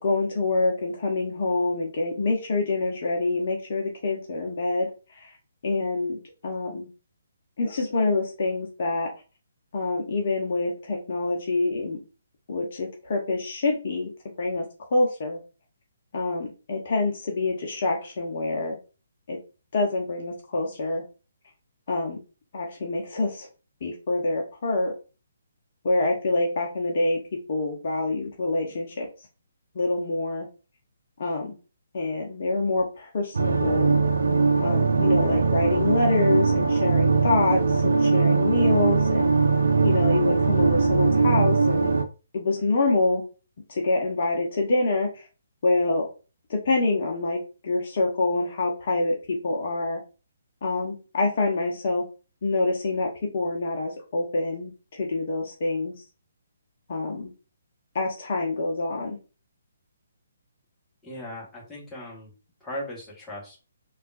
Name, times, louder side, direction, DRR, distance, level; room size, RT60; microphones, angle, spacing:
voice 1, 0.0-5.3 5.6-6.9 7.6-9.1 9.7-12.0 12.5-14.1 14.4-15.4 16.1-18.8 19.3-19.4 19.7-21.0 21.9-22.2 22.5-23.5 23.8-24.9 25.8-29.1 29.7-30.5 31.2-31.5 31.9-33.9 34.6-39.3 39.8-41.9 42.3-43.2 43.7-45.3 45.6-46.1 46.5-50.0 50.6-52.0 52.4-55.9 56.9-57.3 57.9-59.2, left 2 dB, 50° left, 1 dB, 0.7 m, -26 dB
sound 1, 33.3-42.0, right 4 dB, 70° right, 0.4 m, -21 dB
voice 2, 61.0-62.3 62.6-63.6, left 1 dB, 10° left, -4 dB, 1.2 m, -38 dB
3.4 x 2.4 x 2.4 m, 0.33 s
figure-of-eight pair, 140°, 0 cm